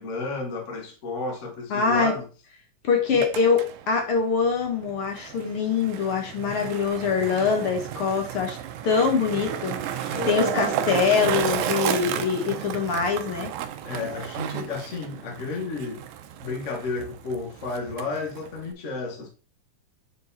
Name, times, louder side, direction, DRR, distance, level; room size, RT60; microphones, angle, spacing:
voice 1, 0.0-2.3 3.1-3.3 6.4-6.8 10.1-10.8 13.8-16.0 16.4-19.3, left 3 dB, 75° left, 0.6 m, -32 dB
voice 2, 1.7-2.1 2.8-8.6 8.8-13.5, left 5 dB, 55° left, 1.8 m, -24 dB
Skateboard, 3.0-18.7, right 10 dB, 80° right, 1.8 m, -33 dB
7.6 x 4.7 x 4.0 m
omnidirectional pair, 3.8 m